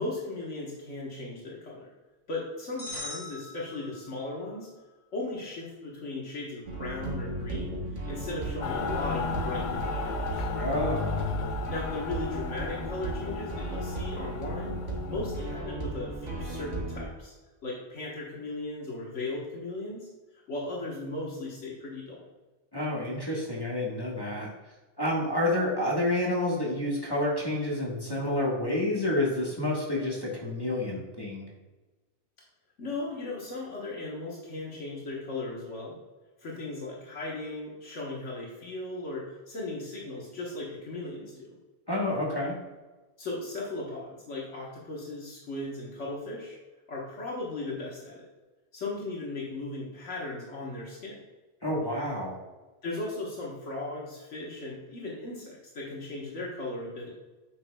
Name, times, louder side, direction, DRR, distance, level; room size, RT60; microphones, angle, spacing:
voice 1, 0.0-1.9 2.3-4.7 5.1-10.5 11.7-14.8 15.1-17.3 17.6-22.3 32.8-36.0 36.4-41.5 43.2-46.6 46.9-48.3 48.7-51.2 52.8-57.1, left 2 dB, 75° left, -4 dB, 1.6 m, -37 dB
sound 1, 2.8-4.3, left 2 dB, 35° left, 2.3 m, -41 dB
sound 2, 6.7-17.1, right 2 dB, 85° right, 1.5 m, -35 dB
Mechanical fan, 8.6-15.4, left 7 dB, 60° left, 0.5 m, -35 dB
voice 2, 10.6-11.2 22.7-24.5 25.0-31.5 41.9-42.6 51.6-52.3, left 1 dB, 20° left, -4 dB, 1.4 m, -29 dB
8.4 x 6.0 x 2.3 m, 1.2 s
omnidirectional pair, 1.2 m